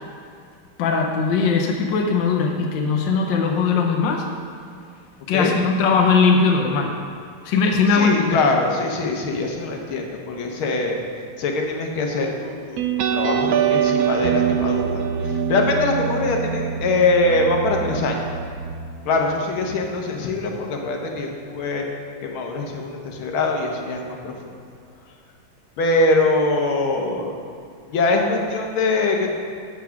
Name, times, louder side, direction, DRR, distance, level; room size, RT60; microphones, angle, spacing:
voice 1, 0.8-4.2 5.3-7.0 7.4-8.4, left 4 dB, 70° left, 2 dB, 1.5 m, -19 dB
voice 2, 7.9-11.0 11.4-12.8 13.1-18.2 19.1-21.9 22.2-24.6 25.8-27.3 27.9-29.4, left 2 dB, 85° left, 1 dB, 1.8 m, -23 dB
sound 1, 12.8-19.9, right 8 dB, 85° right, 0.8 m, -24 dB
7.3 x 7.2 x 5.8 m, 2.3 s
omnidirectional pair, 2.2 m